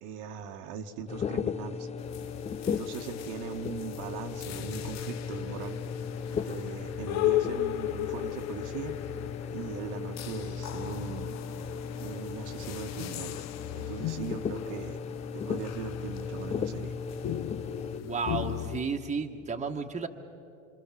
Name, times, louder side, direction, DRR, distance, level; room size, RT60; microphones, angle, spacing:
voice 1, 0.0-1.9 2.7-5.8 6.3-8.9 9.5-11.4 12.0-13.5 13.7-15.0 15.3-16.9, right 7 dB, 65° right, 4 dB, 1.7 m, -40 dB
sound 1, 1.1-18.0, left 6 dB, 15° left, 0.5 m, -37 dB
sound 2, 2.0-18.8, left 13 dB, 45° left, 0.9 m, -37 dB
voice 2, 18.0-20.1, right 4 dB, 15° right, 4 dB, 1.5 m, -32 dB
26.5 x 25.0 x 7.6 m, 2.7 s
hypercardioid pair, 90°, 39 cm